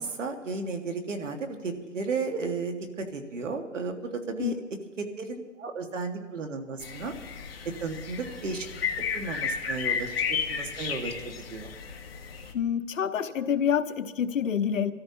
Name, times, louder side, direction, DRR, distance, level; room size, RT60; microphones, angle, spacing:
voice 1, 0.0-4.0 4.3-4.6 5.0-7.1 7.6-8.7 9.1-11.7, right 4 dB, 70° right, 5 dB, 1.9 m, -34 dB
sound 1, 6.8-12.5, left 6 dB, 50° left, 1.7 m, -33 dB
voice 2, 12.5-14.9, left 8 dB, 80° left, 9 dB, 1.0 m, -27 dB
25.5 x 13.5 x 2.9 m, 1.3 s
hypercardioid pair, 175°, 38 cm